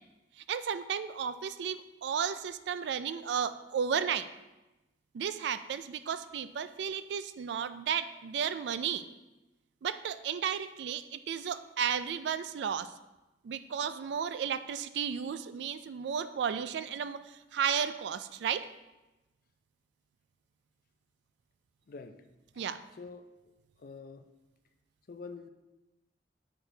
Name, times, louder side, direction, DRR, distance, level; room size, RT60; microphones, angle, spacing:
voice 1, 0.5-4.3 5.1-9.1 9.8-12.9 13.4-18.7 22.6-22.8, right 7 dB, 70° right, 12 dB, 0.3 m, -33 dB
voice 2, 21.9-22.3 22.5-22.6 22.9-23.3 23.8-24.3 25.1-25.5, left 4 dB, 50° left, 8 dB, 0.4 m, -46 dB
7.6 x 4.5 x 3.3 m, 1.0 s
head